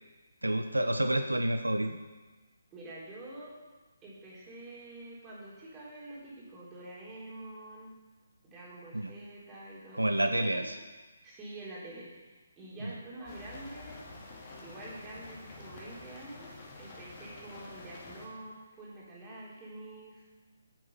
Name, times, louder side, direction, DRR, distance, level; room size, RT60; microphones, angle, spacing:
voice 1, 0.4-2.0 8.9-9.1 9.9-10.8 12.8-12.9, right 1 dB, 85° right, 8 dB, 0.7 m, -29 dB
voice 2, 2.7-3.5 4.0-7.9 8.4-10.7 11.2-14.0 14.6-20.2, right 1 dB, 15° right, -6 dB, 3.5 m, -47 dB
sound 1, 13.2-18.3, left 3 dB, 30° left, 2.2 m, -48 dB
9.5 x 7.3 x 5.5 m, 1.3 s
figure-of-eight pair, 140°, 0 cm